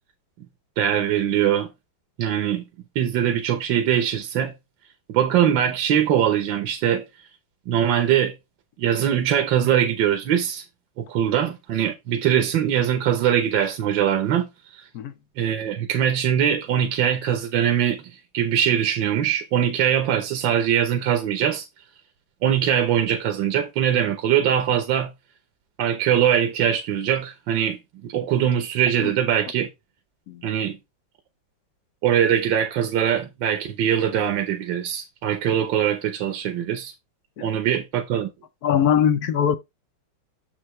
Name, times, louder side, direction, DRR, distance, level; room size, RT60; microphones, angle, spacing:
voice 1, 0.8-1.7 2.2-2.6 2.9-4.5 5.1-7.1 7.7-8.3 8.8-10.6 11.0-14.5 14.7-14.8 15.4-18.1 18.3-21.7 22.4-25.1 25.8-29.7 30.4-30.8 32.0-36.9 37.4-38.3, right 9 dB, 75° right, 1.6 m, -22 dB
voice 2, 38.6-39.6, left 8 dB, 65° left, 1.1 m, -21 dB
7.0 x 6.6 x 3.1 m
omnidirectional pair, 2.0 m